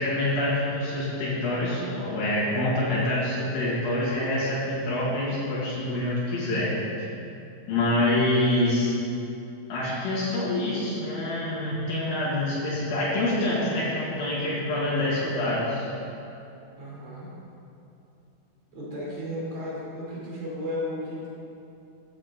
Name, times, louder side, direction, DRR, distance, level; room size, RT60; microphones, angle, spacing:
voice 1, 0.0-6.8 7.7-8.9 9.7-15.9, left 1 dB, 85° left, -8 dB, 3.7 m, -26 dB
voice 2, 16.8-17.3 18.7-21.3, left 1 dB, 45° right, -7 dB, 3.8 m, -34 dB
14.5 x 8.1 x 3.6 m, 2.8 s
omnidirectional pair, 4.1 m